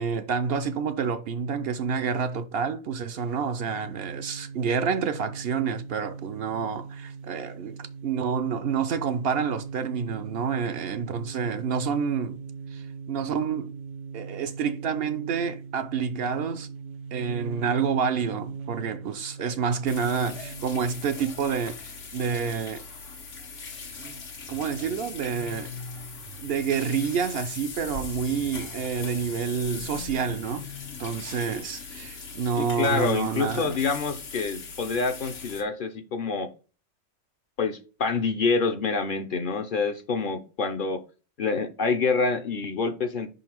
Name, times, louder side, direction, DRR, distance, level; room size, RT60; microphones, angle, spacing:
voice 1, 0.0-12.4 12.7-13.8 14.1-16.7 17.1-21.8 22.1-22.8 24.0-24.2 24.5-25.7 26.4-30.7 31.0-33.8, right 6 dB, 65° right, 0.7 m, -28 dB
sound 1, 3.2-21.4, right 5 dB, 85° right, 1.0 m, -40 dB
sound 2, 19.9-35.6, left 4 dB, 90° left, 1.5 m, -40 dB
sound 3, 24.5-27.6 28.7-31.7, left 4 dB, 70° left, 1.6 m, -46 dB
voice 2, 32.6-36.5 37.6-41.0 41.4-43.3, left 4 dB, 55° left, 0.7 m, -27 dB
5.5 x 3.9 x 4.4 m
omnidirectional pair, 1.2 m